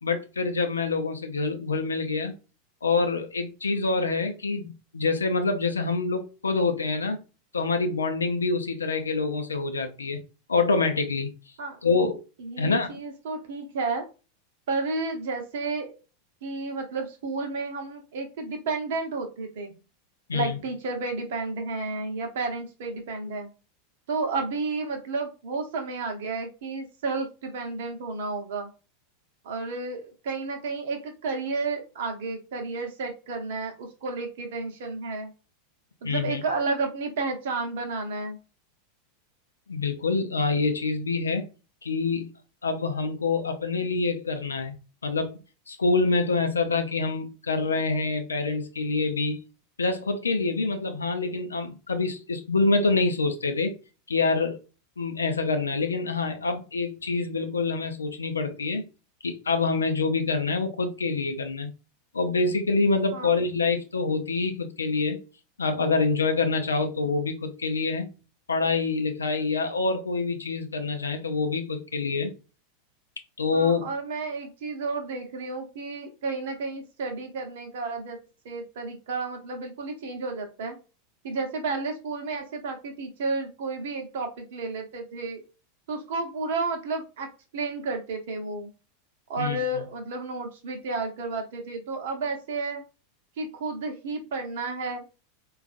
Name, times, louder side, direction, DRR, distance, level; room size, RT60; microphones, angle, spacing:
voice 1, 0.0-2.3 2.8-7.2 7.5-10.2 10.5-11.3 11.8-12.2 12.6-13.0 20.3-20.6 36.0-36.4 39.7-41.5 41.8-42.3 42.6-44.8 45.0-45.3 45.7-49.4 49.8-53.7 54.1-54.6 55.0-58.8 59.2-61.7 62.1-65.2 65.6-68.1 68.5-72.3 73.4-73.9 89.4-89.8, left 3 dB, 80° left, 0.5 m, -26 dB
voice 2, 12.4-14.1 14.7-16.0 16.4-19.7 20.3-23.5 24.1-28.7 29.4-35.3 36.0-38.4 63.1-63.3 73.5-78.2 78.4-80.8 81.2-85.4 85.9-87.3 87.5-88.7 89.3-92.8 93.4-95.0, right 3 dB, 60° right, 0.8 m, -32 dB
3.9 x 2.4 x 2.4 m
figure-of-eight pair, 85°, 0 cm